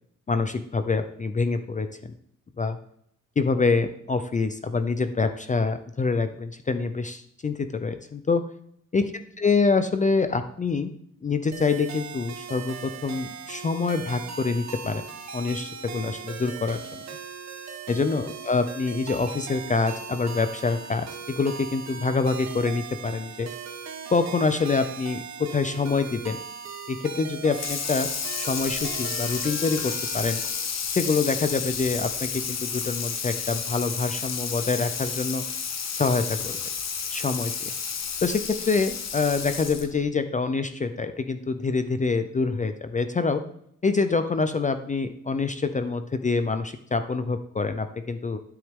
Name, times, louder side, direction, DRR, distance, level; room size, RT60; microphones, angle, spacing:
voice 1, 0.3-2.1 2.6-2.8 3.4-8.4 8.9-9.1 9.4-10.9 11.2-15.0 15.3-16.8 17.9-23.5 24.1-26.4 26.9-28.1 28.4-30.4 30.9-35.4 36.0-36.6 37.1-37.5 38.2-43.4 43.8-48.4, left 4 dB, 25° left, 9 dB, 0.4 m, -26 dB
sound 1, 11.5-30.6, right 6 dB, 55° right, 1.1 m, -39 dB
Water tap faucet / Sink (filling or washing), 27.5-40.0, left 6 dB, 55° left, 1.1 m, -31 dB
12.5 x 8.1 x 3.6 m, 0.71 s
wide cardioid pair, 180°, 32 cm